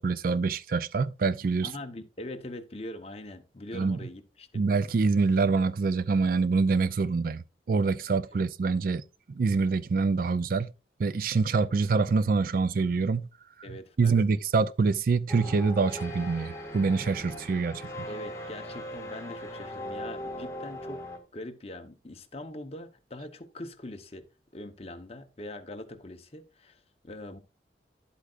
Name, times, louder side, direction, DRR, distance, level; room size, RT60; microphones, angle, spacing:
voice 1, 0.0-1.7 3.7-4.0 4.5-9.0 9.4-10.7 11.0-13.3 14.0-18.1, right 4 dB, 50° right, 0.4 m, -25 dB
voice 2, 1.6-4.6 8.3-8.5 13.6-14.2 18.1-21.1 21.3-24.3 24.5-27.4, left 1 dB, 35° left, 0.9 m, -42 dB
sound 1, 15.3-21.2, equal, 15° left, 1.7 m, -39 dB
11.0 x 8.2 x 2.5 m
head